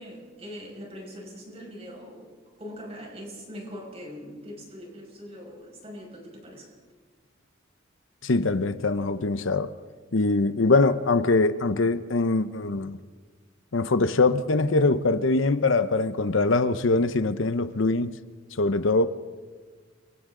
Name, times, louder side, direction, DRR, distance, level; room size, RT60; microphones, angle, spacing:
voice 1, 0.0-6.7, equal, 30° right, 5.9 m, -42 dB
voice 2, 8.2-9.7 10.1-13.0 13.7-18.2 18.5-19.1, left 3 dB, 70° left, 0.8 m, -23 dB
29.5 x 24.5 x 3.8 m
head